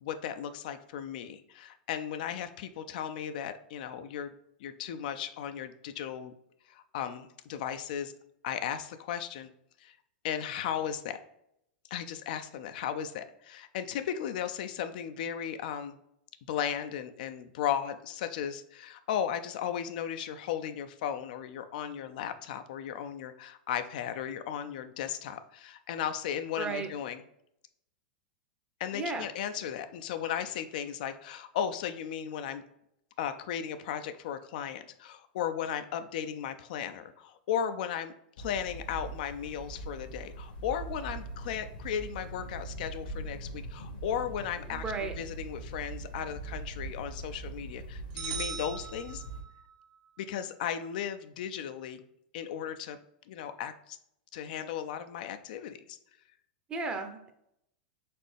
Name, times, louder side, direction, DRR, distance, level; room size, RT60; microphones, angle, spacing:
voice 1, 0.0-4.3 4.6-6.3 6.7-8.1 8.4-9.5 9.8-10.0 10.2-11.2 11.9-16.0 16.5-27.2 28.8-32.6 33.2-49.2 50.2-52.0 52.3-53.0 53.3-54.0 54.3-55.8, left 9 dB, 65° left, 9 dB, 0.4 m, -36 dB
voice 2, 26.6-26.9 28.9-29.3 44.7-45.1 56.7-57.3, right 4 dB, 20° right, 6 dB, 0.7 m, -34 dB
sound 1, 38.4-49.4, right 2 dB, 80° left, 1.3 m, -42 dB
sound 2, 48.2-49.7, right 6 dB, 55° right, 0.9 m, -39 dB
4.2 x 3.6 x 3.3 m, 0.78 s
hypercardioid pair, 115°, 5 cm